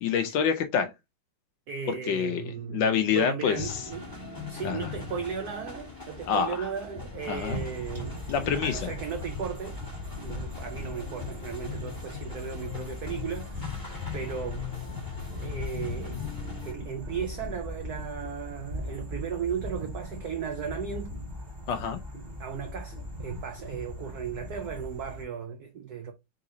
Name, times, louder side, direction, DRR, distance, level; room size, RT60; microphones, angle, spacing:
voice 1, 0.0-0.9 2.1-3.7 4.6-4.9 6.3-6.7 7.3-7.6 8.3-8.9 21.7-22.0, left 7 dB, 70° left, 1.2 m, -27 dB
voice 2, 1.7-4.1 4.5-9.8 10.2-13.9 14.1-14.7 15.4-16.3 16.6-21.2 22.4-26.1, right 7 dB, 80° right, 0.8 m, -36 dB
sound 1, 3.5-16.7, left 6 dB, 10° left, 1.1 m, -39 dB
sound 2, 7.3-25.2, left 1 dB, 20° right, 2.0 m, -40 dB
3.9 x 3.9 x 2.6 m
omnidirectional pair, 2.4 m